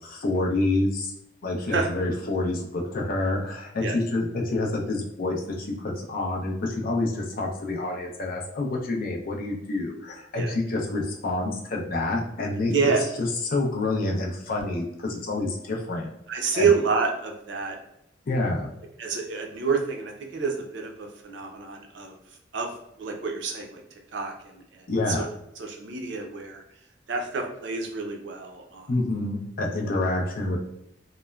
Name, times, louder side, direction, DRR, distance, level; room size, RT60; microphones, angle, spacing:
voice 1, 0.0-1.1 1.4-12.7 13.2-16.1 16.5-16.7 18.3-18.7 24.9-25.3 28.9-30.6, left 2 dB, 50° left, 0 dB, 0.5 m, -27 dB
voice 2, 12.7-13.1 16.3-17.8 19.0-22.2 22.5-22.7 23.0-23.8 24.1-25.2 25.6-26.6 27.1-28.9, right 5 dB, 70° right, 2 dB, 0.5 m, -28 dB
3.0 x 2.0 x 2.2 m, 0.78 s
head